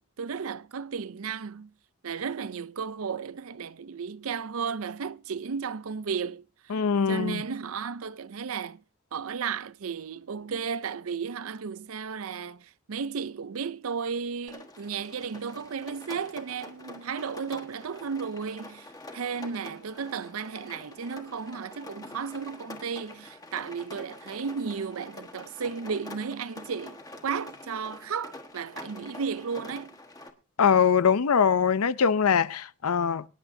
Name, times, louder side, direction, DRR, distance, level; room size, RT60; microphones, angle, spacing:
voice 1, 0.0-1.7 2.0-8.8 9.1-27.0 27.2-29.9, right 6 dB, 75° right, 0.5 m, -34 dB
voice 2, 6.7-7.4 30.6-33.3, left 6 dB, 85° left, 0.6 m, -22 dB
Rain, 14.5-30.3, left 2 dB, 15° left, 1.3 m, -46 dB
24.0 x 10.0 x 2.7 m
head